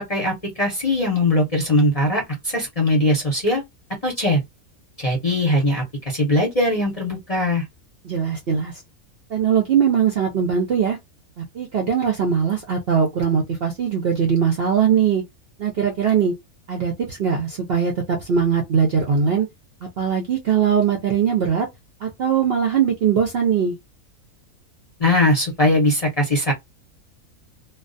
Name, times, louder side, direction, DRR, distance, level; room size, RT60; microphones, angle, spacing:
voice 1, 0.1-3.6 4.0-4.4 5.0-7.6 25.0-26.5, left 1 dB, 35° left, 0.6 m, -20 dB
voice 2, 8.0-8.7 9.3-11.0 11.4-15.2 15.6-16.3 16.7-19.5 20.0-21.7 22.0-23.7, right 7 dB, 60° right, 0.6 m, -20 dB
2.3 x 2.2 x 2.5 m
omnidirectional pair, 1.5 m